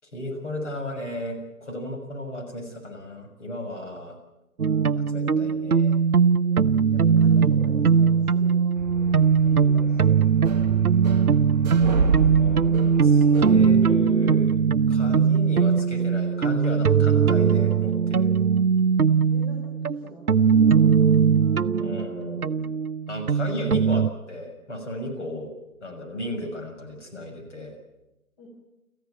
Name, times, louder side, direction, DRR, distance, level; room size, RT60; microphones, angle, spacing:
voice 1, 0.0-4.1 4.9-6.0 12.4-14.6 14.9-18.3 21.8-22.8 23.1-25.5 25.8-27.8, left 1 dB, 55° left, 3 dB, 6.5 m, -34 dB
sound 1, 4.6-24.1, right 6 dB, 80° right, 0.8 m, -20 dB
voice 2, 6.1-9.1 9.4-10.2 10.5-10.9 19.3-20.8 28.4-28.5, left 1 dB, 30° left, -2 dB, 6.2 m, -45 dB
sound 2, 8.7-13.7, right 5 dB, 30° right, 1.1 m, -28 dB
27.0 x 15.0 x 9.2 m, 0.97 s
figure-of-eight pair, 145°, 43 cm